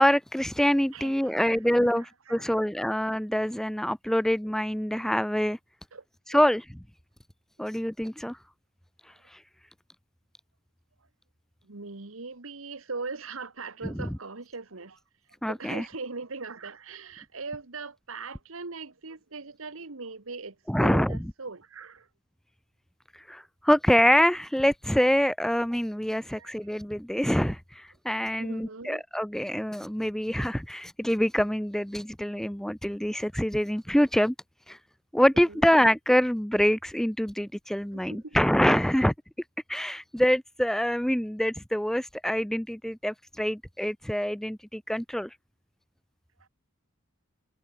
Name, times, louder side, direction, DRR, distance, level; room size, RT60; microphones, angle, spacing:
voice 1, 0.0-2.0 2.3-5.6 6.3-6.6 7.6-8.4 9.3-9.4 13.8-14.1 15.4-15.8 20.7-21.2 23.3-34.3 34.7-34.8 35.1-39.1 39.7-45.3, equal, ahead, 0.5 m, -25 dB
voice 2, 0.9-2.6 5.9-6.0 11.6-15.0 15.5-22.1 26.3-26.5 28.4-29.0 35.5-35.6 37.9-38.4 46.4-46.5, right 4 dB, 75° right, 1.5 m, -40 dB
head